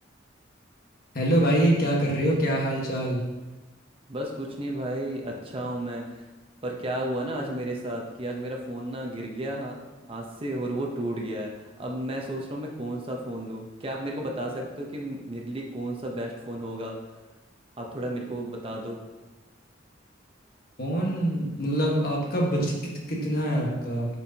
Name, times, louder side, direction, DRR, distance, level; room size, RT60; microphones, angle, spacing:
voice 1, 1.1-3.2 20.8-24.1, right 1 dB, 50° left, -2 dB, 1.4 m, -25 dB
voice 2, 4.1-6.3 6.6-9.8 10.1-17.0 17.8-19.0, right 1 dB, 30° right, 0 dB, 0.8 m, -33 dB
8.7 x 4.6 x 2.8 m, 1.1 s
head